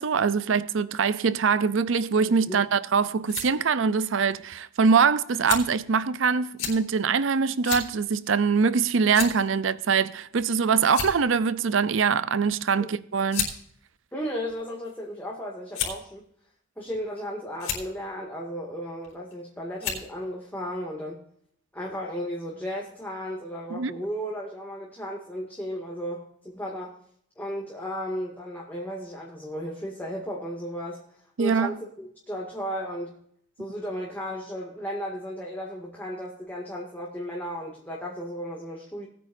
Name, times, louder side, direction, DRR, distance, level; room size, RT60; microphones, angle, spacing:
voice 1, 0.0-13.5 23.7-24.0 31.4-31.8, right 5 dB, 70° right, 0.5 m, -23 dB
sound 1, 3.2-3.5 4.3-4.4 5.5-5.8 6.6-6.8 7.6-7.9 8.3-8.4 9.1-9.5 10.4-10.5 10.8-11.3 12.4-12.6 13.3-13.6 14.4-15.0 15.7-16.1 16.9-17.2 17.5-17.8 19.0-19.3 19.8-20.1, left 7 dB, 70° left, 4.2 m, -31 dB
voice 2, 14.1-16.2 16.8-21.2 21.7-26.9 27.4-31.0 31.4-33.2 33.6-39.1, equal, 10° left, 2.2 m, -34 dB
19.5 x 9.4 x 2.6 m
head